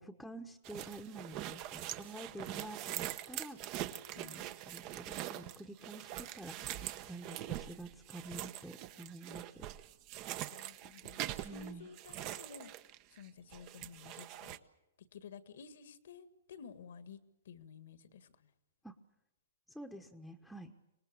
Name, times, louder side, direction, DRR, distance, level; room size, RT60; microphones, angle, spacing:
voice 1, 0.0-6.6 7.1-9.7 11.4-11.9 18.8-18.9 19.7-20.7, right 1 dB, ahead, 3 dB, 1.2 m, -49 dB
sound 1, 0.6-13.3 13.5-14.6, right 13 dB, 35° right, 1.0 m, -43 dB
voice 2, 4.1-4.6 10.5-11.2 11.5-12.7 13.1-14.6 15.1-17.2 17.5-18.5, left 6 dB, 70° left, 12 dB, 1.8 m, -53 dB
25.5 x 19.0 x 8.5 m, 0.92 s
hypercardioid pair, 140°, 0 cm